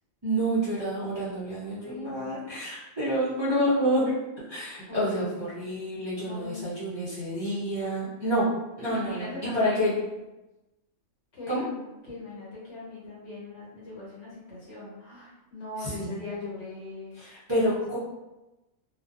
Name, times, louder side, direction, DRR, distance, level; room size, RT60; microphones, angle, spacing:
voice 1, 0.2-4.1 4.5-8.4 8.8-9.3 9.5-9.9 11.5-11.6 15.8-16.1 17.5-18.0, equal, 35° right, -11 dB, 0.4 m, -28 dB
voice 2, 1.6-2.5 4.9-5.6 6.2-6.7 8.9-9.8 11.3-17.2, left 2 dB, 60° left, -7 dB, 1.2 m, -40 dB
2.5 x 2.2 x 2.3 m, 1.0 s
omnidirectional pair, 1.3 m